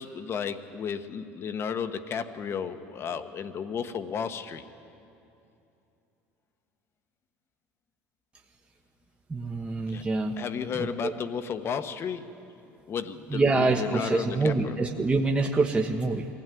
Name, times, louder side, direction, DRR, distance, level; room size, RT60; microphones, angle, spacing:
voice 1, 0.0-4.7 9.9-10.0 10.4-12.3 12.9-14.8, left 7 dB, 45° left, 9 dB, 1.3 m, -33 dB
voice 2, 9.3-10.4 10.7-11.1 13.3-16.3, right 3 dB, 20° right, 1 dB, 1.3 m, -26 dB
23.0 x 16.0 x 9.3 m, 2.8 s
supercardioid pair, 90°, 6 cm